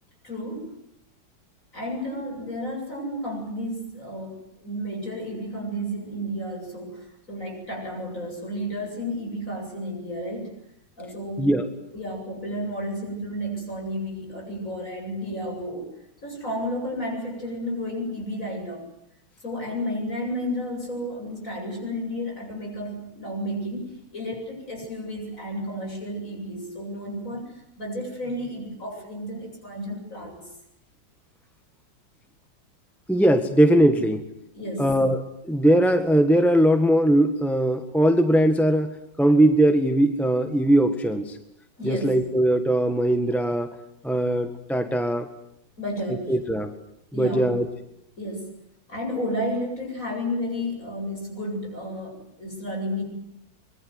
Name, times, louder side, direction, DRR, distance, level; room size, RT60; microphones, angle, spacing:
voice 1, 0.2-0.7 1.7-10.5 11.0-11.5 11.9-15.9 16.2-18.8 19.4-30.4 34.5-34.9 41.8-42.2 45.8-46.4 47.1-47.5 48.2-48.6 48.9-53.0, equal, 45° left, 1 dB, 8.7 m, -32 dB
voice 2, 33.1-34.2 34.8-41.4 41.8-43.7 44.0-45.3 46.3-46.7 47.1-47.7, right 1 dB, ahead, 7 dB, 1.4 m, -20 dB
24.5 x 22.0 x 9.6 m, 0.80 s
omnidirectional pair, 2.0 m